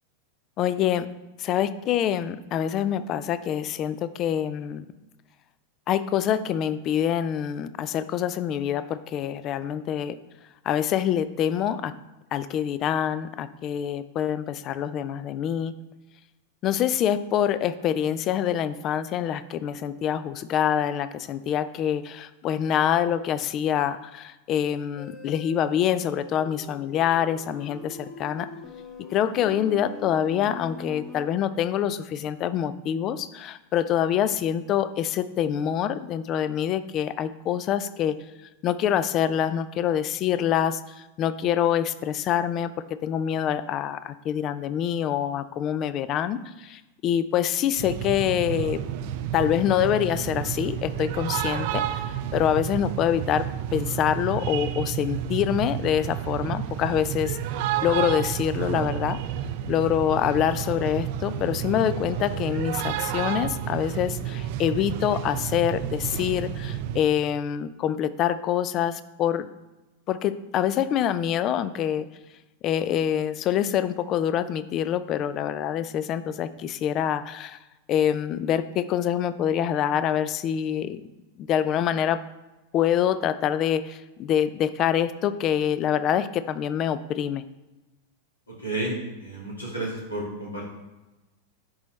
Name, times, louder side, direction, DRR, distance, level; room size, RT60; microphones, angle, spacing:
voice 1, 0.6-1.1 1.4-4.9 5.9-10.2 10.6-11.9 12.3-15.7 16.6-28.5 29.1-38.2 38.6-42.7 43.0-48.9 49.3-52.0 52.3-57.4 57.8-59.2 59.7-69.5 70.1-72.1 72.6-77.6 77.9-81.0 81.4-82.2 82.7-87.4, left 10 dB, 35° left, 14 dB, 0.4 m, -25 dB
sound 1, 25.0-31.3, left 3 dB, 20° left, 1.1 m, -43 dB
sound 2, 47.8-67.0, right 10 dB, 50° right, 0.4 m, -31 dB
voice 2, 88.5-90.7, right 1 dB, 75° left, -3 dB, 2.3 m, -32 dB
10.5 x 4.0 x 3.2 m, 1.1 s
figure-of-eight pair, 90°, 0 cm